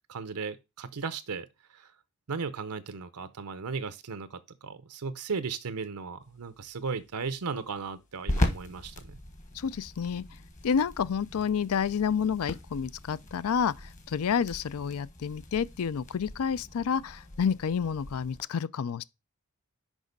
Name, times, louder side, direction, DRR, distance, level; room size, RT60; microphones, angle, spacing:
voice 1, 0.1-1.9 2.3-9.2, right 5 dB, 80° right, 0.7 m, -36 dB
sound 1, 6.2-18.4, left 1 dB, 35° left, 1.3 m, -38 dB
voice 2, 9.5-10.2 10.6-19.0, left 7 dB, 70° left, 0.4 m, -29 dB
6.2 x 5.2 x 5.2 m
head